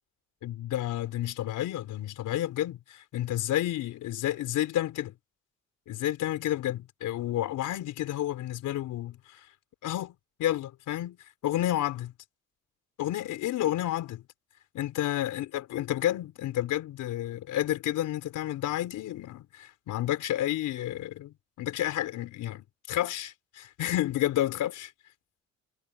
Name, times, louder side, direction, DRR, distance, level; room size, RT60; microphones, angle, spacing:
voice 1, 0.4-5.1 5.9-9.4 9.8-10.1 10.4-11.2 11.4-12.1 13.0-14.2 14.8-24.9, left 13 dB, 85° left, 4.2 m, -30 dB
cardioid pair, 90°, 30 cm